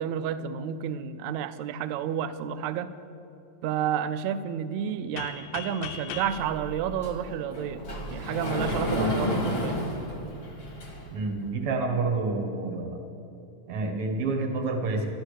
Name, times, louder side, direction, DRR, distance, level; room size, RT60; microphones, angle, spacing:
voice 1, 0.0-2.9 3.6-7.8 8.1-9.8, right 8 dB, 80° right, 12 dB, 1.8 m, -30 dB
sound 1, 5.2-7.9, left 7 dB, 80° left, 2.2 m, -40 dB
Sliding door, 6.3-11.3, left 1 dB, 25° left, 1.3 m, -32 dB
voice 2, 11.1-13.0 13.7-15.1, right 3 dB, 55° right, 4 dB, 2.1 m, -28 dB
12.5 x 11.5 x 6.5 m, 2.8 s
omnidirectional pair, 3.5 m